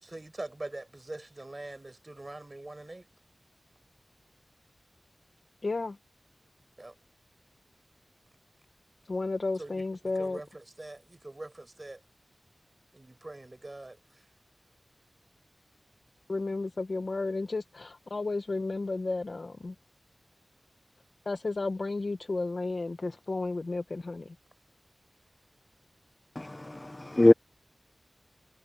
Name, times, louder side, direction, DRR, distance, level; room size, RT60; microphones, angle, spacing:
voice 1, 0.0-3.1 6.8-6.9 9.6-12.0 12.9-14.2, right 2 dB, 35° right, 5.2 m, -43 dB
voice 2, 5.6-6.0 9.1-10.4 16.3-19.7 21.3-24.3, left 3 dB, 55° left, 1.0 m, -32 dB
voice 3, 26.4-27.3, left 1 dB, 25° left, 0.4 m, -23 dB
wide cardioid pair, 65°, 0 cm